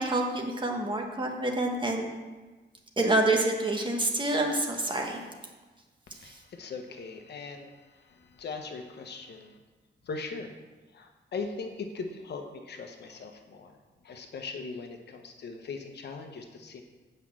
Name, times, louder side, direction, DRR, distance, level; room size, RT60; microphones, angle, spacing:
voice 1, 0.0-2.0 3.0-5.2 6.3-6.4, right 2 dB, 25° right, 2 dB, 1.2 m, -27 dB
voice 2, 6.1-9.6 10.0-10.5 10.9-13.8 14.0-16.8, left 4 dB, 65° left, 5 dB, 1.0 m, -40 dB
8.3 x 5.4 x 7.4 m, 1.3 s
wide cardioid pair, 175°, 19 cm